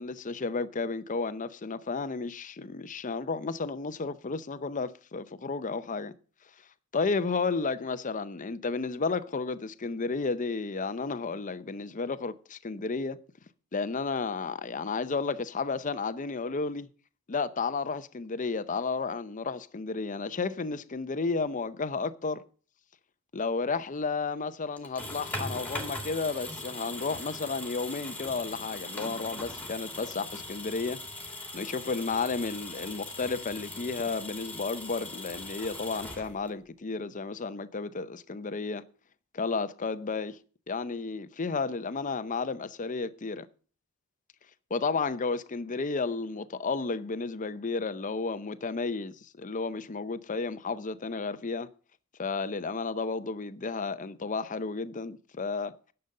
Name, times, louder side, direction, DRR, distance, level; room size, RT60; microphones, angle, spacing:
voice 1, 0.0-6.1 6.9-13.2 13.7-16.9 17.3-22.4 23.3-38.8 39.3-40.4 40.7-43.5 44.7-51.7 52.2-55.7, left 4 dB, 40° left, 0.6 m, -32 dB
sound 1, 24.8-36.7, left 2 dB, 5° left, 2.2 m, -40 dB
10.5 x 6.9 x 6.5 m
head